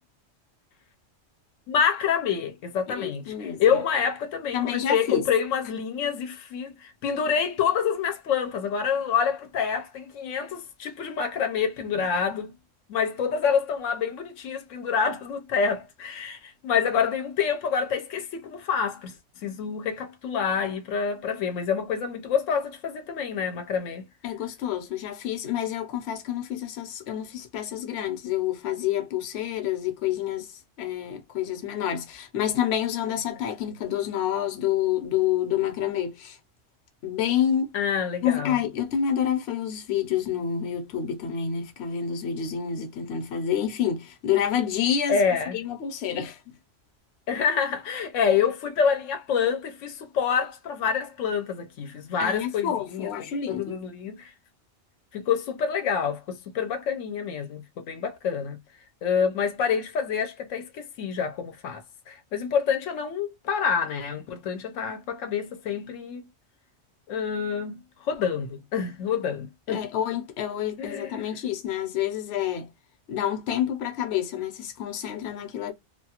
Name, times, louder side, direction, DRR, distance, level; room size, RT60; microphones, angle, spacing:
voice 1, 1.7-12.5 12.9-19.1 19.4-24.1 37.7-38.6 45.1-45.6 47.3-54.3 55.1-58.6 59.0-66.3 67.1-67.8 68.1-69.9 70.8-71.2, left 6 dB, 90° left, 1.0 m, -27 dB
voice 2, 2.9-3.8 4.5-5.2 11.9-12.0 24.2-30.5 30.8-36.4 37.0-37.7 38.2-45.2 45.5-46.4 52.2-53.8 69.7-72.7 73.1-75.7, left 9 dB, 65° left, 0.9 m, -28 dB
2.5 x 2.3 x 2.8 m
omnidirectional pair, 1.3 m